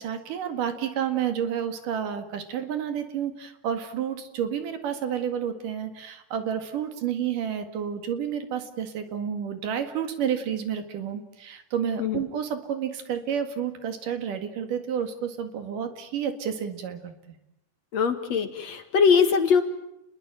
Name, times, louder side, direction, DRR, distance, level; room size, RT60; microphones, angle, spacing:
voice 1, 0.0-17.1, right 8 dB, 70° right, 8 dB, 3.5 m, -30 dB
voice 2, 17.9-19.6, left 6 dB, 55° left, 8 dB, 2.7 m, -21 dB
29.0 x 21.5 x 9.1 m, 0.81 s
omnidirectional pair, 3.9 m